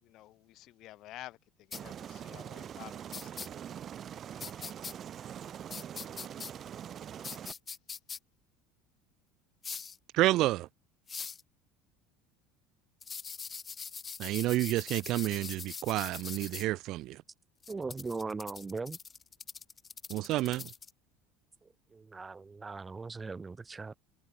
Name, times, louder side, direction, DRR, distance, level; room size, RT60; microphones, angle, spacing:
voice 1, 0.0-3.8, left 16 dB, 55° left, 4.4 m, -51 dB
sound 1, 1.7-1.8 3.1-3.5 4.4-4.9 5.7-6.5 7.2-8.2 9.6-10.0 11.1-11.4 13.0-16.6 17.6-20.9, left 5 dB, 25° left, 0.5 m, -42 dB
Aircraft, 1.7-7.5, right 9 dB, 40° right, 2.9 m, -43 dB
voice 2, 10.1-10.7 14.2-17.2 20.1-20.7, right 17 dB, 60° right, 0.3 m, -29 dB
voice 3, 17.7-19.0 21.9-23.9, right 4 dB, 15° right, 1.6 m, -39 dB
supercardioid pair, 115°, 0 cm